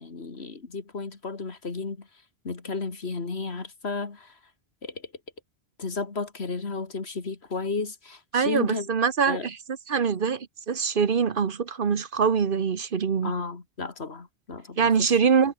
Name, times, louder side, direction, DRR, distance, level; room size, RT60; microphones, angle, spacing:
voice 1, 0.0-2.1 2.4-4.3 4.8-5.1 5.8-8.9 9.3-9.5 13.2-15.1, left 4 dB, 75° left, 2.5 m, -33 dB
voice 2, 8.3-9.6 9.9-13.3 14.8-15.5, right 6 dB, 55° right, 1.1 m, -24 dB
omnidirectional pair, 1.1 m